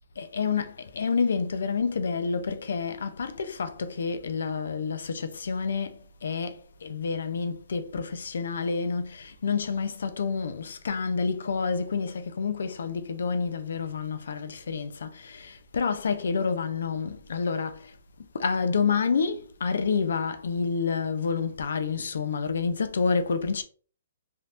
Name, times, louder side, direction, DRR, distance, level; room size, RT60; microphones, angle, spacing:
voice 1, 0.2-6.6 6.8-17.8 18.3-23.6, left 5 dB, 75° left, 0.5 m, -28 dB
3.4 x 2.8 x 2.5 m
hypercardioid pair, 165°, 0 cm